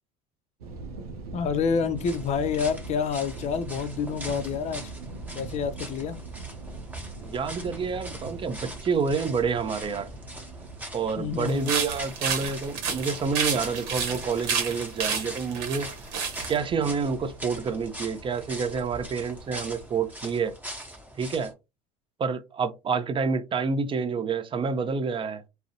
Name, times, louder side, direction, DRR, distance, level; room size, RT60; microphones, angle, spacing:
sound 1, 0.6-19.9, right 3 dB, 90° right, 0.5 m, -43 dB
voice 1, 1.3-4.9 5.3-6.2 11.2-11.7, left 6 dB, 40° left, 0.4 m, -28 dB
sound 2, 2.0-21.5, equal, 10° right, 1.0 m, -43 dB
voice 2, 7.2-10.1 10.9-15.9 16.5-20.6 21.2-21.5 22.2-25.4, right 5 dB, 25° right, 0.5 m, -28 dB
sound 3, 11.5-16.6, right 6 dB, 65° right, 0.9 m, -30 dB
2.4 x 2.0 x 2.7 m
hypercardioid pair, 75°, 19 cm